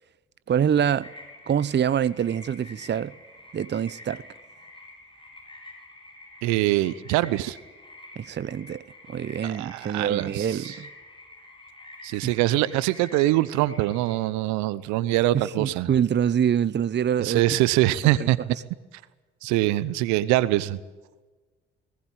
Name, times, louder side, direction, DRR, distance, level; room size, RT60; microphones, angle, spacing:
voice 1, 0.5-1.1 1.5-3.1 3.5-4.2 8.2-10.9 12.2-12.3 15.3-17.4 18.2-18.3, right 8 dB, 40° right, 0.8 m, -25 dB
sound 1, 1.0-14.2, left 2 dB, 15° left, 8.0 m, -48 dB
voice 2, 6.4-7.6 9.4-10.7 12.0-15.9 17.2-18.4 19.4-20.8, right 16 dB, 75° right, 0.9 m, -23 dB
20.0 x 18.5 x 9.0 m
hypercardioid pair, 50°, 29 cm